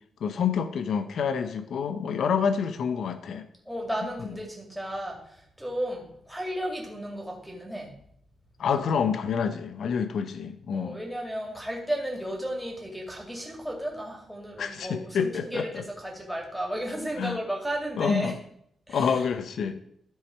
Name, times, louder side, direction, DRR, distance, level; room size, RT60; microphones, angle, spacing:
voice 1, 0.2-3.5 8.6-11.0 14.6-15.8 17.2-17.4 18.0-18.4 18.9-19.8, left 6 dB, 65° left, 10 dB, 0.7 m, -27 dB
voice 2, 3.7-7.9 9.4-9.6 10.7-18.3 18.9-19.2, right 1 dB, ahead, 0 dB, 2.1 m, -34 dB
13.0 x 4.8 x 4.3 m, 0.69 s
wide cardioid pair, 155°, 0 cm